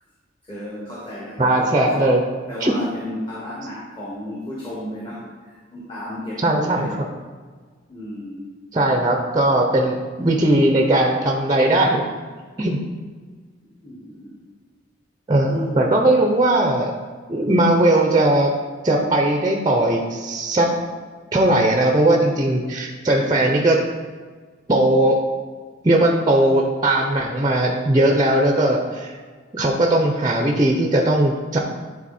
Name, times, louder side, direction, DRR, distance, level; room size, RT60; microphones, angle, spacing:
voice 1, 0.4-2.2 2.5-6.9 7.9-8.5 10.2-10.3 11.2-11.3 13.6-14.3 15.4-15.9, left 1 dB, 25° left, -6 dB, 1.4 m, -34 dB
voice 2, 1.4-2.2 2.6-2.8 6.4-6.9 8.7-12.0 12.6-12.8 15.3-16.9 17.3-18.5 18.8-20.7 21.3-23.8 24.7-25.2 25.8-29.2 29.5-31.6, right 1 dB, 20° right, 2 dB, 0.6 m, -18 dB
10.0 x 4.0 x 4.2 m, 1.5 s
head